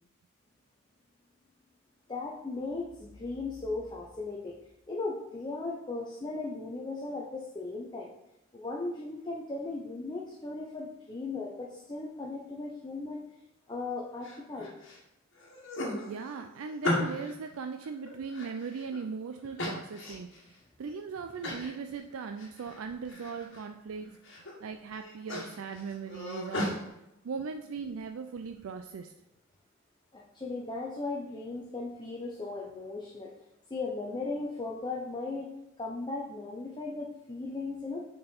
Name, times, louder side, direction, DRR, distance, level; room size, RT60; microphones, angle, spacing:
voice 1, 2.1-4.5 4.9-8.1 8.5-13.2 13.7-14.7 30.1-33.3 33.7-35.5 35.8-38.0, left 3 dB, 20° left, -1 dB, 0.6 m, -37 dB
sound 1, 14.2-15.0 15.4-17.4 17.8-19.0 19.6-20.4 20.8-20.9 21.4-21.7 22.1-22.8 23.1-23.6 24.1-24.5 24.9-26.8, left 1 dB, 60° left, 1.6 m, -36 dB
voice 2, 16.0-29.1, right 5 dB, 80° right, 6 dB, 0.4 m, -39 dB
6.3 x 4.4 x 4.4 m, 0.88 s
head